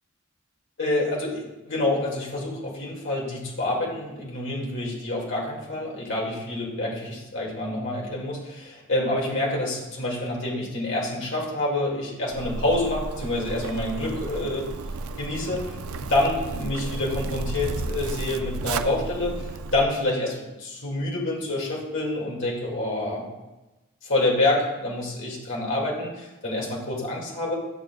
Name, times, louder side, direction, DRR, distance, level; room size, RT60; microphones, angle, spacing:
voice 1, 0.8-14.7 15.2-23.3 24.0-27.6, left 2 dB, 60° left, -3 dB, 2.2 m, -27 dB
Zipper (clothing), 12.3-19.8, right 3 dB, 80° right, 0.4 m, -33 dB
11.5 x 6.4 x 2.3 m, 1.1 s
head